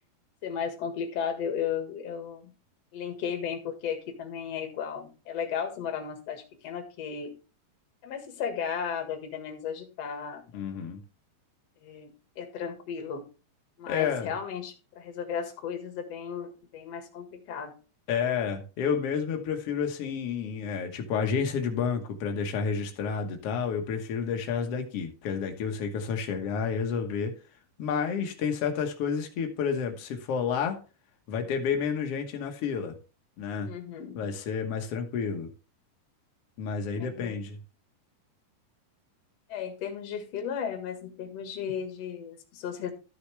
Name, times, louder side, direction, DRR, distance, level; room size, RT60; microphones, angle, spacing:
voice 1, 0.4-2.5 2.9-7.3 8.0-10.4 11.8-13.3 13.8-17.7 28.1-28.3 33.6-34.3 36.9-37.4 39.5-42.9, left 7 dB, 50° left, 2.3 m, -35 dB
voice 2, 10.5-11.0 13.9-14.3 18.1-27.3 27.8-30.8 31.3-33.0 33.4-33.7 34.2-35.5 36.6-37.6, left 6 dB, 75° left, 1.3 m, -30 dB
13.0 x 6.5 x 3.3 m
omnidirectional pair, 4.6 m